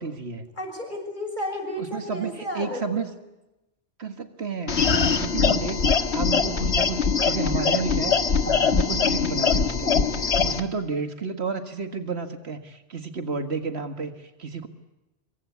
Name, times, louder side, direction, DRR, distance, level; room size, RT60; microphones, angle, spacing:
voice 1, 0.0-0.5 1.9-3.1 4.0-14.7, right 5 dB, 75° right, 8 dB, 2.0 m, -31 dB
voice 2, 0.5-3.0, equal, 50° left, 4 dB, 6.6 m, -32 dB
sound 1, 4.7-10.6, left 5 dB, 90° left, 1.8 m, -22 dB
25.5 x 24.0 x 8.4 m, 0.96 s
omnidirectional pair, 1.1 m